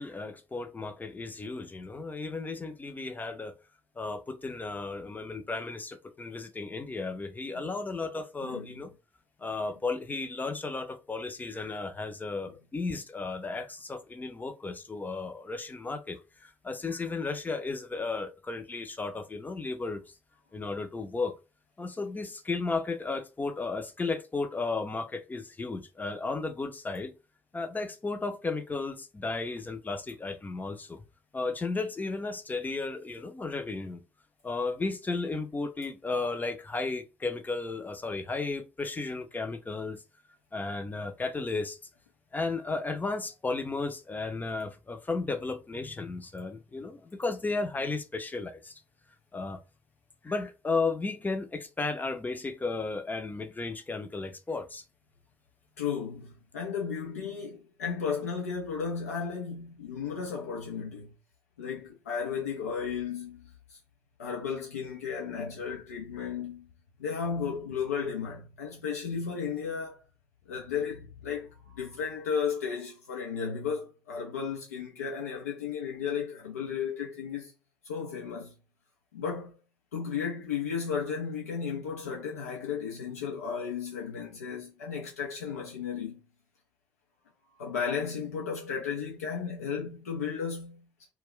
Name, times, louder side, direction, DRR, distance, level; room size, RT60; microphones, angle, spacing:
voice 1, 0.0-3.5 4.0-8.9 9.4-16.2 16.4-20.0 20.5-21.3 21.8-27.1 27.5-31.0 31.3-34.0 34.4-40.0 40.5-41.8 42.3-48.7 49.3-49.6 50.2-54.8, left 3 dB, 20° left, 0.6 m, -34 dB
voice 2, 8.4-8.8 12.5-12.6 55.8-61.1 61.6-63.8 64.2-66.7 67.0-70.0 70.5-77.5 77.8-78.5 79.1-79.6 79.9-86.2 87.6-91.1, left 6 dB, 85° left, 0.5 m, -34 dB
2.2 x 2.2 x 3.7 m
hypercardioid pair, 50°, 8 cm